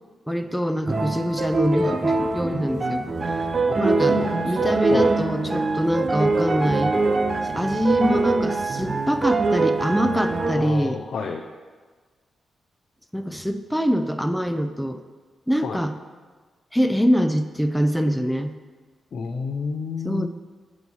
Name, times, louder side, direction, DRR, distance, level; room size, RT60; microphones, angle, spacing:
voice 1, 0.3-3.1 3.8-7.0 7.4-11.0 13.1-15.0 15.5-15.9 16.7-18.5 20.0-20.3, equal, ahead, 8 dB, 0.5 m, -24 dB
sound 1, 0.9-10.6, right 3 dB, 40° right, 0.6 m, -23 dB
voice 2, 3.7-5.1 10.5-11.4 15.6-15.8 19.1-20.3, left 5 dB, 65° left, 3 dB, 0.5 m, -30 dB
8.1 x 3.1 x 5.5 m, 1.4 s
cardioid pair, 60°, 0 cm